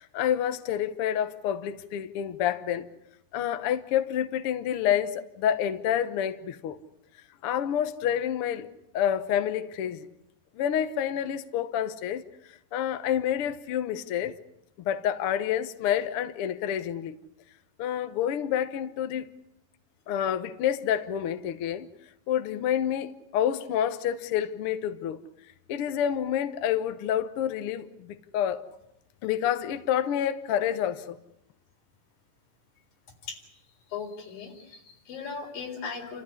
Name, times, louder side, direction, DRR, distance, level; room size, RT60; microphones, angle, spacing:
voice 1, 0.0-2.9 3.3-6.8 7.4-8.7 8.9-10.1 10.5-12.2 12.7-14.4 14.8-17.2 17.8-19.3 20.1-21.9 22.3-25.2 25.7-28.6 29.2-31.2, left 10 dB, 70° left, 1.4 m, -28 dB
voice 2, 33.9-36.2, left 5 dB, 90° left, 5.8 m, -38 dB
29.5 x 14.0 x 9.7 m
omnidirectional pair, 3.9 m